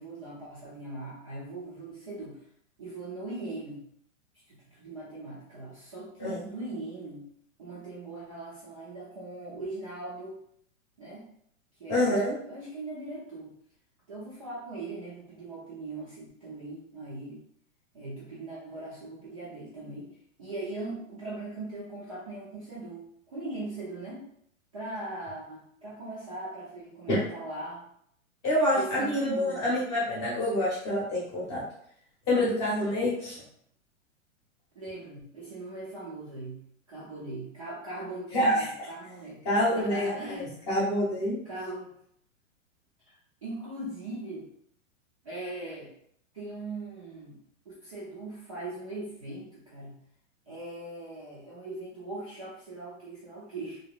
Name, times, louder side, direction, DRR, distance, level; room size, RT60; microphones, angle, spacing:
voice 1, 0.0-2.4 2.8-3.8 4.5-7.3 7.6-10.4 11.0-11.3 11.8-13.5 14.1-17.4 17.9-20.1 20.4-24.2 24.7-27.8 28.7-29.7 33.0-33.2 34.8-36.6 36.9-39.4 39.8-40.7 41.5-41.9 43.1-44.5 45.2-45.9 46.3-47.4 47.7-50.0 50.5-53.8, right 2 dB, 25° right, -9 dB, 0.4 m, -40 dB
voice 2, 11.9-12.3 27.1-27.2 28.4-31.6 32.3-33.3 38.3-38.7 39.4-41.4, left 1 dB, 20° left, -7 dB, 0.8 m, -27 dB
2.8 x 2.8 x 2.3 m, 0.67 s
hypercardioid pair, 175°, 40 cm